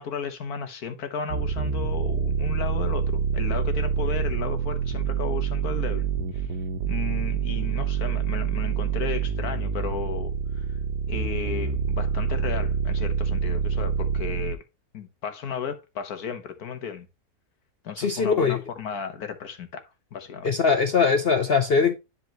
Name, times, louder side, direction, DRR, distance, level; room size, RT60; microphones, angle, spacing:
voice 1, 0.0-6.1 6.3-6.5 6.8-10.6 11.1-14.6 14.9-17.1 17.8-19.8 20.1-20.5, left 6 dB, 65° left, 1.7 m, -34 dB
sound 1, 1.3-14.6, right 7 dB, 85° right, 1.5 m, -26 dB
voice 2, 18.0-18.6 20.4-22.0, left 5 dB, 50° left, 0.8 m, -21 dB
10.5 x 4.6 x 3.0 m
omnidirectional pair, 1.7 m